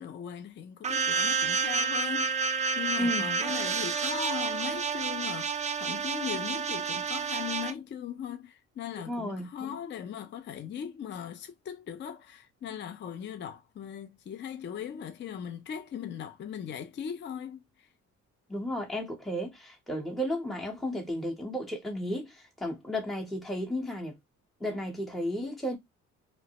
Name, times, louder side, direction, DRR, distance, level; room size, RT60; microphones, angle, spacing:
voice 1, 0.0-17.9, left 9 dB, 40° left, 0.4 m, -39 dB
sound 1, 0.8-7.7, right 5 dB, 25° right, 0.4 m, -30 dB
voice 2, 3.0-3.3 9.1-9.7 18.5-24.2 24.6-25.8, equal, ahead, 0.8 m, -33 dB
2.9 x 2.0 x 2.7 m
cardioid pair, 90°, 30 cm